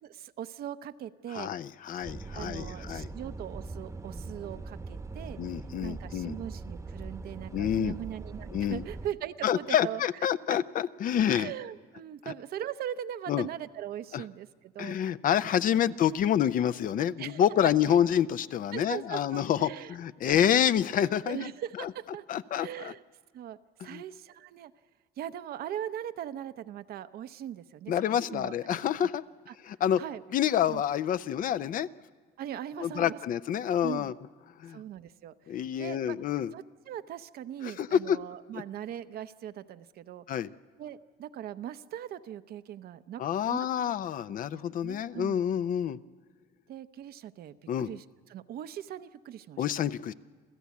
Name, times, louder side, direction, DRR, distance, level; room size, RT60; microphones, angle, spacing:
voice 1, 0.0-1.5 2.3-5.4 5.8-10.0 10.5-10.6 11.3-15.0 15.8-15.9 17.2-18.0 18.7-19.9 21.2-22.2 22.6-23.0 23.3-24.7 25.2-28.8 29.5-29.6 30.0-30.2 30.7-30.8 32.4-33.2 33.8-34.1 34.7-36.2 36.5-40.2 40.8-43.2 43.5-43.7 44.5-45.4 46.7-48.0 48.3-49.6, right 10 dB, 65° right, 11 dB, 0.8 m, -40 dB
voice 2, 1.3-3.1 5.4-6.4 7.5-8.0 8.5-8.8 9.4-11.5 12.2-12.3 13.3-13.5 14.1-14.2 14.8-21.5 21.8-21.9 22.3-22.9 23.8-24.0 27.9-29.2 29.6-30.0 30.3-31.9 32.8-34.1 34.6-34.8 35.5-36.5 37.6-38.2 38.5-38.6 40.3-40.5 43.2-46.0 47.7-47.9 49.6-50.1, left 9 dB, 55° left, 15 dB, 0.6 m, -28 dB
sound 1, 2.0-9.1, right 3 dB, 15° right, 1.0 m, -41 dB
28.0 x 15.0 x 8.4 m, 1.5 s
cardioid pair, 110°, 17 cm